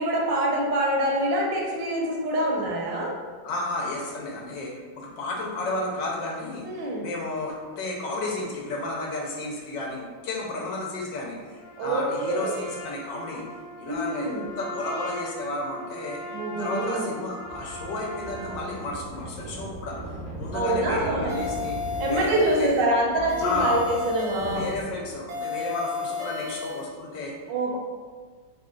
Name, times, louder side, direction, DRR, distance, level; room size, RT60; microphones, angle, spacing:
voice 1, 0.0-3.1 6.6-7.1 11.8-12.5 13.9-14.5 16.3-17.1 20.5-21.3 22.0-24.7 27.5-27.8, right 1 dB, 75° right, -2 dB, 1.3 m, -25 dB
voice 2, 3.4-13.4 13.8-16.2 16.6-20.0 20.4-21.8 22.1-22.7 23.4-23.8 24.4-27.4 27.7-27.8, left 2 dB, 75° left, -2 dB, 1.3 m, -32 dB
Trumpet, 11.6-18.8, equal, 45° left, 0.8 m, -40 dB
sound 1, 17.4-25.2, right 2 dB, 10° right, 0.3 m, -39 dB
sound 2, 21.3-22.9 23.3-24.9 25.3-26.9, left 5 dB, 55° right, 0.9 m, -32 dB
3.5 x 2.3 x 3.7 m, 1.5 s
omnidirectional pair, 2.1 m